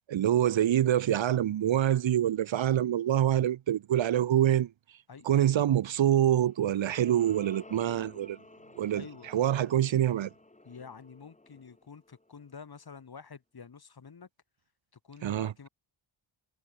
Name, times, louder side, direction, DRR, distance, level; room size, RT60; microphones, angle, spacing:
voice 1, 0.1-4.7 5.2-8.4 8.8-9.0 9.3-10.3 15.2-15.5, right 11 dB, 70° right, 0.9 m, -25 dB
voice 2, 5.1-5.7 8.9-9.3 10.6-14.3 14.9-15.7, left 5 dB, 50° left, 3.9 m, -48 dB
sound 1, 6.2-12.7, left 2 dB, 15° left, 2.9 m, -53 dB
wide cardioid pair, 105°, 48 cm